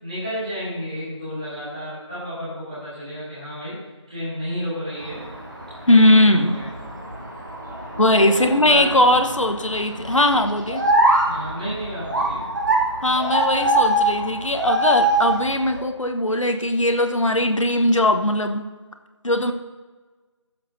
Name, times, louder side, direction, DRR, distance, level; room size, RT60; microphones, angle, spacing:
voice 1, 0.0-3.8 4.1-5.3 5.9-6.6 8.1-9.0 11.2-12.4, equal, 15° right, -12 dB, 2.4 m, -31 dB
sound 1, 5.0-15.8, right 1 dB, 35° right, 1.5 m, -24 dB
voice 2, 5.9-6.6 8.0-10.8 13.0-18.7 19.2-19.5, left 1 dB, 85° left, 5 dB, 1.2 m, -19 dB
20.5 x 7.4 x 2.7 m, 1.4 s
figure-of-eight pair, 175°, 16 cm